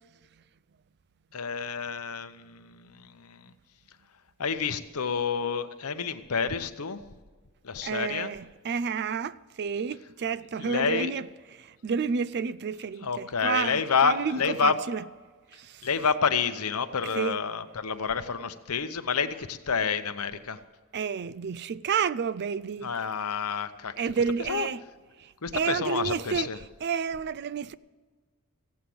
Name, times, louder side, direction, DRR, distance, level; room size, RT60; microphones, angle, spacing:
voice 1, 1.3-3.5 4.4-7.0 7.6-8.3 10.6-11.1 13.0-14.7 15.8-20.6 22.8-23.9 24.5-24.7 25.4-26.6, left 6 dB, 80° left, 0.9 m, -29 dB
voice 2, 7.8-15.0 15.5-15.9 17.1-17.4 20.9-23.0 24.0-24.8 25.2-26.5 26.8-27.7, right 6 dB, 50° right, 0.4 m, -30 dB
16.0 x 8.5 x 7.7 m
head